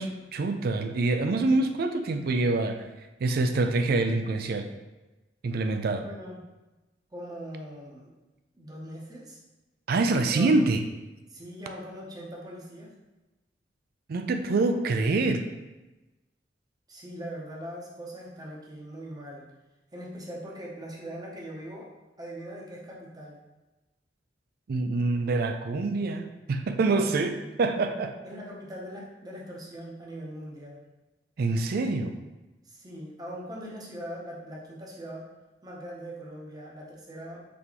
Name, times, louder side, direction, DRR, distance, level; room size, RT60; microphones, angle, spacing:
voice 1, 0.0-4.7 5.4-6.1 9.9-10.8 14.1-15.4 24.7-28.2 31.4-32.2, right 3 dB, 60° right, 7 dB, 0.4 m, -26 dB
voice 2, 6.0-6.4 7.1-8.1 8.5-9.4 10.3-10.5 11.3-12.9 16.9-19.5 19.9-21.9 22.2-23.4 26.9-27.2 28.2-30.8 32.6-35.3 35.6-37.5, equal, 20° right, -3 dB, 0.8 m, -41 dB
4.1 x 3.4 x 3.0 m, 1.1 s
head